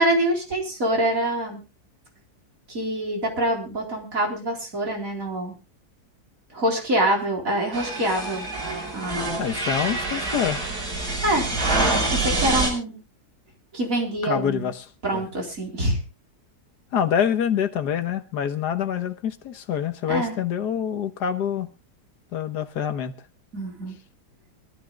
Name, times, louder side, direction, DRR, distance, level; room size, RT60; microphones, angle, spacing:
voice 1, 0.0-1.6 2.7-5.5 6.5-8.5 8.9-9.3 11.2-11.5 12.1-12.9 13.7-14.7 15.0-16.0 20.1-20.3 23.5-24.0, right 1 dB, 55° right, 4.5 m, -25 dB
sound 1, 7.7-12.7, right 2 dB, 75° right, 6.3 m, -26 dB
voice 2, 9.4-10.6 14.2-15.3 16.9-21.7 22.3-23.1, left 8 dB, 75° left, 1.6 m, -26 dB
25.0 x 14.0 x 2.4 m
omnidirectional pair, 1.7 m